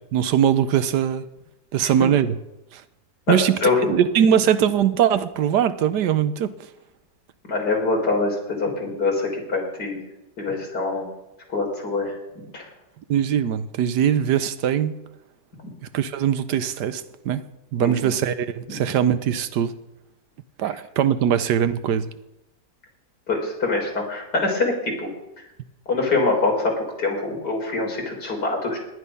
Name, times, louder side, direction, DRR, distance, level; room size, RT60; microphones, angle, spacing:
voice 1, 0.1-1.2 1.7-2.4 2.7-2.8 3.3-3.6 3.9-6.5 13.1-14.9 15.9-17.4 17.7-19.7 20.6-22.1, right 9 dB, 85° right, 13 dB, 1.4 m, -21 dB
voice 2, 3.3-3.8 7.5-10.0 10.4-11.1 11.5-12.1 12.5-12.7 17.8-18.1 18.7-18.8 23.3-25.1 25.9-28.8, left 3 dB, 75° left, 0 dB, 4.3 m, -24 dB
18.5 x 10.5 x 5.4 m, 0.92 s
omnidirectional pair, 1.8 m